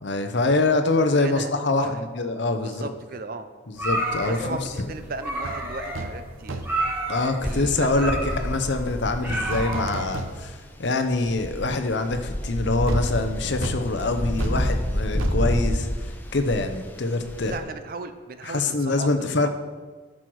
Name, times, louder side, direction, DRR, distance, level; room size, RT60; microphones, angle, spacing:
voice 1, 0.0-2.8 3.7-4.6 7.1-17.6 18.4-19.5, left 2 dB, 55° left, 7 dB, 0.7 m, -25 dB
voice 2, 1.1-2.0 2.6-3.5 4.3-6.7 7.4-8.2 17.4-19.5, right 3 dB, 45° right, 10 dB, 0.5 m, -36 dB
sound 1, 3.8-10.4, right 1 dB, 10° right, 1.3 m, -31 dB
sound 2, 5.4-5.6 5.9-6.2 6.5-6.9 9.3-10.7 11.1-11.2 12.9-16.5 16.8-16.9, right 2 dB, 80° right, 0.8 m, -35 dB
sound 3, 7.4-17.6, equal, 10° left, 0.6 m, -29 dB
10.0 x 6.2 x 4.7 m, 1.4 s
head